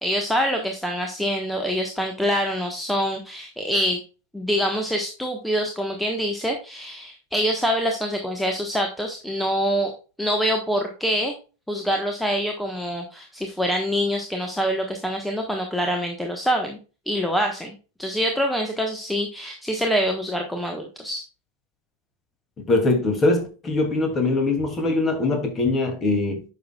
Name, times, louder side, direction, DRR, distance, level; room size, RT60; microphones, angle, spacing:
voice 1, 0.0-4.0 4.3-9.9 10.2-11.3 11.7-16.8 17.1-21.2, equal, ahead, 1.3 m, -25 dB
voice 2, 22.7-26.4, left 2 dB, 20° left, 2.7 m, -22 dB
10.0 x 6.4 x 2.4 m
figure-of-eight pair, 90°, 0 cm